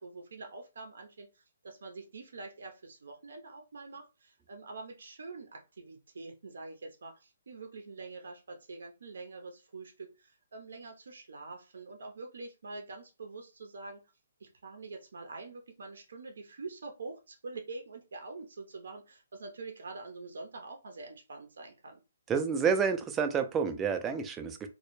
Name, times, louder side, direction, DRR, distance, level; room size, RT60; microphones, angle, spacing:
voice 1, 0.0-14.0 14.4-22.0, right 3 dB, 75° right, 3 dB, 0.5 m, -45 dB
voice 2, 22.3-24.7, right 6 dB, 15° right, 7 dB, 0.3 m, -29 dB
2.1 x 2.0 x 3.0 m, 0.29 s
hypercardioid pair, 150°, 0 cm